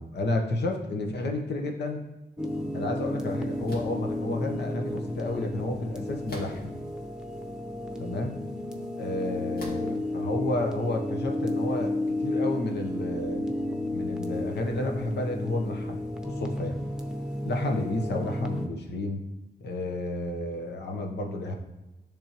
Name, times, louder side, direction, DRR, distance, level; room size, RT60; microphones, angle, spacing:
voice 1, 0.0-2.0 2.7-6.7 8.0-8.4 9.0-13.4 13.9-16.8 17.4-19.2 19.6-21.5, left 2 dB, 90° left, 2 dB, 1.0 m, -31 dB
sound 1, 2.4-18.7, left 1 dB, 5° right, 0.8 m, -32 dB
sound 2, 3.7-4.0 6.3-6.8 7.5-7.6 9.6-10.0, left 1 dB, 65° left, 1.6 m, -41 dB
10.0 x 3.5 x 3.0 m, 1.1 s
cardioid pair, 80°, 17 cm